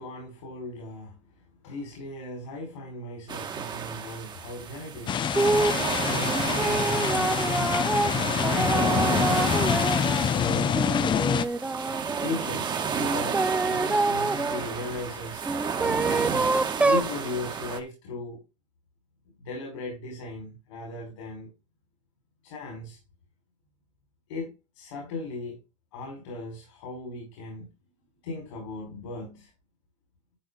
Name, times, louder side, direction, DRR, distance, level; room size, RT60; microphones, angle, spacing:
voice 1, 0.0-9.7 10.3-10.8 11.5-11.6 12.1-15.4 15.8-18.4 19.4-21.5 22.4-23.0 24.3-25.6 25.9-27.7 28.2-29.5, left 2 dB, 80° left, 5.4 m, -38 dB
sound 1, 3.3-17.8, right 6 dB, 30° right, 1.9 m, -31 dB
sound 2, 5.1-11.5, left 8 dB, 30° left, 0.8 m, -26 dB
sound 3, 5.4-5.8 6.3-10.3 10.7-12.3 13.0-14.6 15.4-17.1, right 2 dB, 5° right, 0.5 m, -27 dB
13.0 x 4.9 x 4.0 m
supercardioid pair, 115°, 16 cm